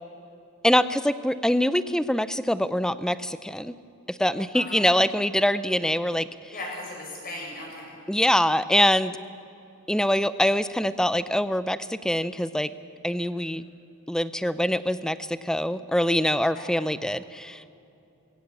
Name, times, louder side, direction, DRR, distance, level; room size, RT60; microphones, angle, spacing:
voice 1, 0.6-3.7 4.1-6.5 8.1-9.2 9.9-12.7 13.0-13.6 14.1-17.7, left 1 dB, 5° left, 14 dB, 0.5 m, -24 dB
voice 2, 4.5-4.9 6.5-7.8 13.3-13.6 16.5-16.7, left 2 dB, 40° left, -2 dB, 7.1 m, -38 dB
21.5 x 17.0 x 8.5 m, 2.7 s
head